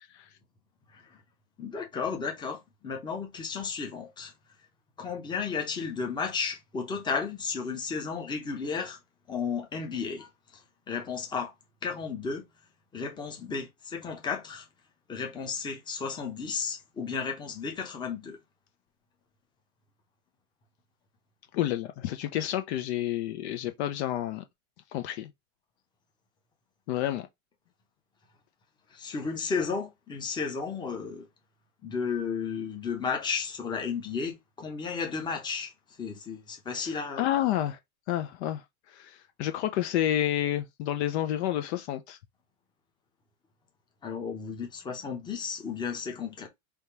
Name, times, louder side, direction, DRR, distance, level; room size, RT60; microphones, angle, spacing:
voice 1, 1.6-4.3 5.0-9.0 9.3-11.5 11.8-12.4 12.9-14.7 15.1-18.4 28.9-31.3 31.8-35.7 36.0-37.3 44.0-46.5, left 5 dB, 10° left, 0.8 m, -33 dB
voice 2, 21.5-24.4 24.9-25.3 26.9-27.3 37.2-37.8 38.1-38.6 38.9-42.2, left 12 dB, 50° left, 0.6 m, -29 dB
3.6 x 2.8 x 4.6 m
supercardioid pair, 155°, 44 cm